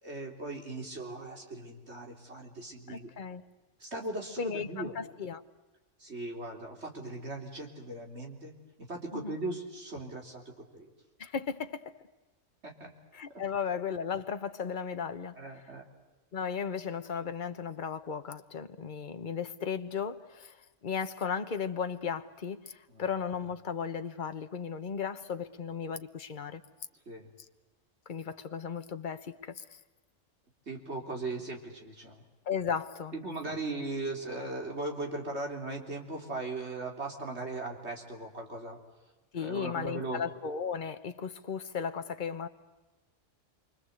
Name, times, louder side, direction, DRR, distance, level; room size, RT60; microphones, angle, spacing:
voice 1, 0.0-3.1 3.8-4.9 6.0-8.5 8.8-10.9 12.6-12.9 15.4-15.8 22.9-23.1 27.1-27.3 30.7-32.2 33.1-38.8 39.3-40.2, right 2 dB, 60° right, 3.9 m, -38 dB
voice 2, 2.9-3.4 4.4-5.4 9.1-9.4 11.2-11.9 13.1-15.4 16.3-20.6 20.8-26.6 28.1-29.6 32.5-33.1 39.3-42.5, left 6 dB, 40° left, 1.2 m, -35 dB
28.5 x 24.5 x 8.1 m
omnidirectional pair, 1.3 m